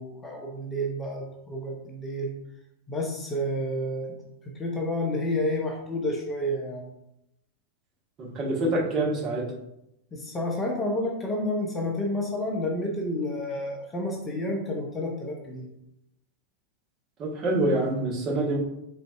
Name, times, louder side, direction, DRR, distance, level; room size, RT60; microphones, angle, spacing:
voice 1, 0.0-2.3 2.9-4.1 4.5-6.9 10.1-15.7, left 1 dB, 20° left, 0 dB, 0.8 m, -30 dB
voice 2, 8.2-9.4 17.2-18.6, right 2 dB, 30° right, -3 dB, 1.2 m, -26 dB
4.2 x 3.9 x 2.3 m, 0.82 s
figure-of-eight pair, 90°, 0 cm